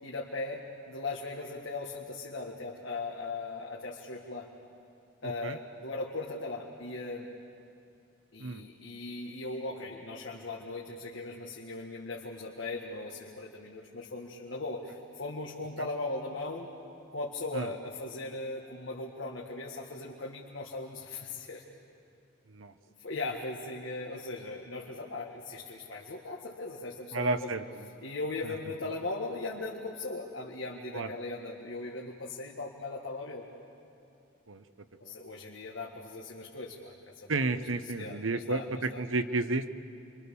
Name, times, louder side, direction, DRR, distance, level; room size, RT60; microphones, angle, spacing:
voice 1, 0.0-4.5 5.2-7.3 8.3-16.7 17.1-21.6 23.0-27.6 28.0-33.5 35.0-37.3 38.0-39.0, left 2 dB, 70° left, -2 dB, 1.8 m, -38 dB
voice 2, 5.2-5.6 8.4-8.6 17.5-17.7 22.5-22.7 27.1-27.9 28.4-28.5 30.9-31.1 34.5-34.6 35.0-35.1 37.3-39.7, right 3 dB, 85° right, 10 dB, 1.0 m, -32 dB
29.5 x 24.5 x 7.0 m, 2.7 s
head